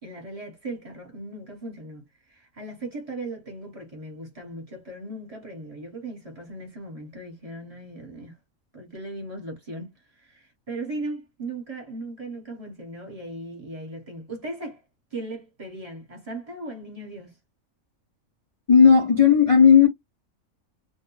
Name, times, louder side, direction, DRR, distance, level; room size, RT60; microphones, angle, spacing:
voice 1, 0.0-8.3 8.7-9.9 10.1-14.8 15.1-17.3, right 2 dB, 30° right, 1.0 m, -37 dB
voice 2, 18.7-19.9, left 6 dB, 55° left, 0.3 m, -14 dB
2.4 x 2.2 x 3.0 m
omnidirectional pair, 1.5 m